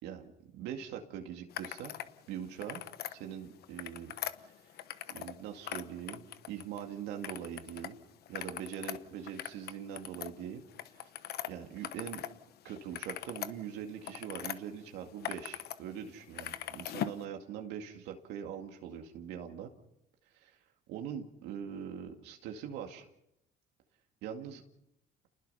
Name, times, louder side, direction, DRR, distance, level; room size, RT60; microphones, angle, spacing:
voice 1, 0.5-1.9 2.3-2.8 3.1-4.2 5.1-8.0 8.3-10.6 10.9-11.1 11.5-12.2 12.6-19.7 20.3-20.6 20.9-23.1 24.2-24.6, right 8 dB, 90° right, 3 dB, 2.3 m, -42 dB
sound 1, 1.5-2.1 2.5-3.1 3.6-5.4 5.6-6.8 7.2-7.9 8.2-12.3 12.7-14.6 15.0-15.8 16.0-17.2, left 11 dB, 70° left, 1.1 m, -41 dB
29.0 x 20.0 x 5.7 m, 0.84 s
cardioid pair, 110°, 17 cm